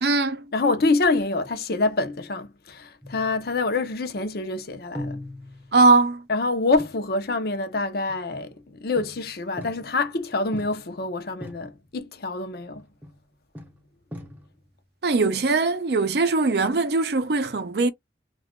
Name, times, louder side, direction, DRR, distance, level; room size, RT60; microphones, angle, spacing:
voice 1, 0.0-0.5 5.7-6.2 15.0-17.9, right 3 dB, 60° right, 0.5 m, -21 dB
voice 2, 0.5-5.2 6.3-12.8, left 3 dB, 55° left, 0.6 m, -26 dB
sound 1, 3.0-3.9 4.9-6.1 6.8-7.1 8.1-8.6 8.9-10.1 10.5-11.1 11.4-12.0 12.7-13.3 13.5-14.7, left 1 dB, 10° right, 0.6 m, -41 dB
2.4 x 2.3 x 3.6 m
head